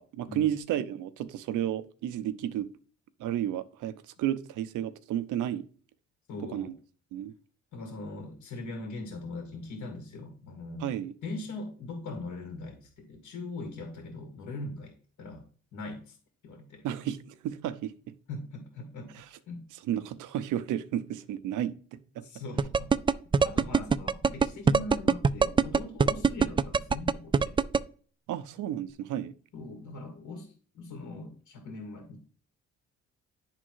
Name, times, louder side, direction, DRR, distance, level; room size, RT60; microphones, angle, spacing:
voice 1, 0.0-2.7 3.2-5.7 6.5-6.7 7.1-7.3 10.8-11.1 16.8-17.9 19.2-19.3 19.9-22.2 28.3-29.3, right 11 dB, 85° right, 0.8 m, -32 dB
voice 2, 6.3-6.7 7.7-10.9 11.2-15.5 15.7-16.2 16.4-16.9 18.3-19.6 22.2-22.9 23.4-27.6 29.5-32.2, left 2 dB, 80° left, 2.1 m, -41 dB
sound 1, 22.6-27.8, right 5 dB, 15° right, 0.3 m, -21 dB
10.0 x 3.8 x 4.6 m
cardioid pair, 90°, 30 cm